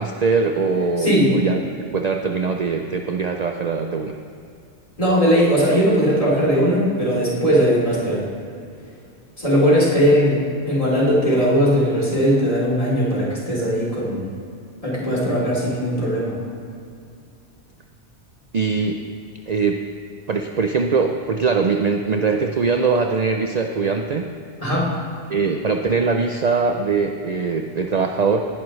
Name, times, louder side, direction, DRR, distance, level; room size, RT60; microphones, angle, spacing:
voice 1, 0.0-4.2 18.5-19.0 19.5-19.8 20.3-24.3 25.3-28.4, right 4 dB, 45° right, 4 dB, 0.6 m, -22 dB
voice 2, 1.0-1.3 5.0-8.2 9.4-14.3 14.8-16.3 24.6-24.9, equal, 30° left, -6 dB, 3.3 m, -19 dB
18.5 x 11.0 x 3.2 m, 2.5 s
omnidirectional pair, 1.1 m